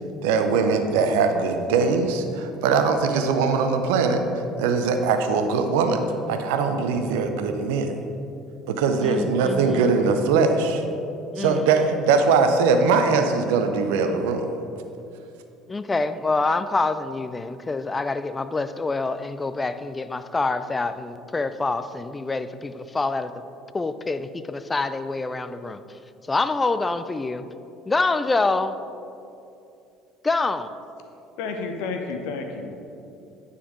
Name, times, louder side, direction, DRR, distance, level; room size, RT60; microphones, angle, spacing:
voice 1, 0.2-4.3 4.6-8.0 8.7-10.8 11.4-14.5, right 4 dB, 70° right, 7 dB, 0.6 m, -21 dB
voice 2, 9.0-9.9 11.3-11.7 15.7-23.3 23.7-25.8 26.3-27.5 27.9-28.8 30.2-30.7, left 3 dB, 20° left, 12 dB, 0.4 m, -26 dB
voice 3, 31.4-32.8, left 4 dB, 65° left, 4 dB, 0.8 m, -31 dB
9.4 x 5.5 x 3.7 m, 2.7 s
figure-of-eight pair, 60°, 0 cm